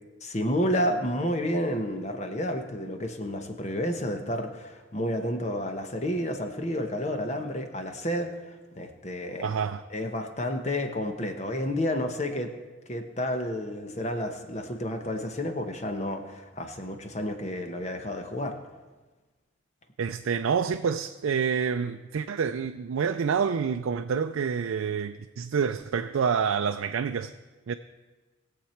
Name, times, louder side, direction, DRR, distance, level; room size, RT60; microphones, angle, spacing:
voice 1, 0.2-9.5 9.9-12.5 12.9-18.6, left 1 dB, 35° left, 6 dB, 1.0 m, -30 dB
voice 2, 9.4-9.8 20.0-27.3 27.7-27.8, right 6 dB, 90° right, 8 dB, 0.4 m, -27 dB
20.5 x 7.5 x 4.4 m, 1.3 s
head